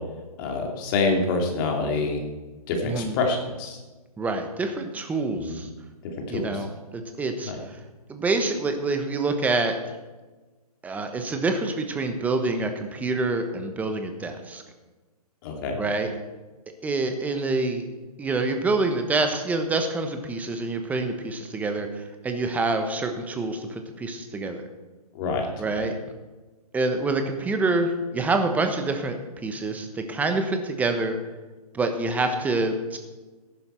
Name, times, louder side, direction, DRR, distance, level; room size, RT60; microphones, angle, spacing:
voice 1, 0.4-2.2 2.7-3.8 5.4-5.6 6.3-6.5 7.4-7.6 15.4-15.8 25.1-25.5 25.8-25.9, left 3 dB, 35° left, 2 dB, 2.7 m, -26 dB
voice 2, 2.8-3.1 4.2-5.7 6.3-7.8 8.1-10.0 10.8-14.6 15.8-16.1 16.8-17.9 18.2-24.6 25.6-26.0 26.7-31.2 31.7-33.0, right 3 dB, 5° right, 6 dB, 1.1 m, -26 dB
14.0 x 11.0 x 4.5 m, 1.2 s
hypercardioid pair, 140°, 20 cm